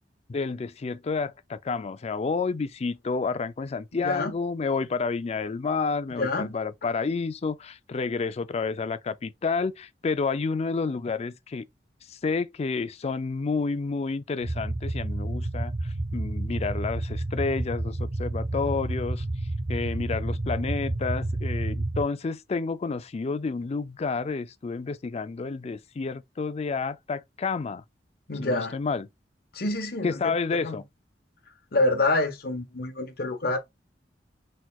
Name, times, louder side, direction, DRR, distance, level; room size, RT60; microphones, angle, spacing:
voice 1, 0.3-11.6 12.1-19.2 19.7-27.8 28.4-29.1 30.0-30.8, left 4 dB, 35° left, 0.4 m, -30 dB
voice 2, 3.9-4.3 6.1-6.5 28.3-28.7 29.5-30.8 31.7-33.6, left 2 dB, 60° left, 1.0 m, -27 dB
sound 1, 14.4-22.0, right 2 dB, 70° right, 1.1 m, -30 dB
4.2 x 4.2 x 2.3 m
head